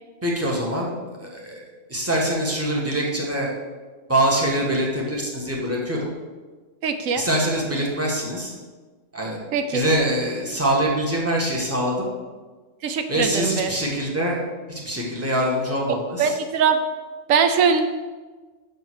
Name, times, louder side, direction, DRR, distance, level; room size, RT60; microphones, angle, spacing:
voice 1, 0.2-0.9 1.2-1.6 1.9-3.5 4.1-6.1 7.1-8.5 9.1-9.4 9.7-12.1 13.1-14.4 14.7-16.4, right 1 dB, 10° right, -3 dB, 1.3 m, -24 dB
voice 2, 6.8-7.2 9.5-9.9 12.8-13.7 15.9-16.8 17.3-17.8, right 6 dB, 85° right, 8 dB, 1.0 m, -21 dB
6.2 x 5.4 x 6.1 m, 1.3 s
omnidirectional pair, 1.3 m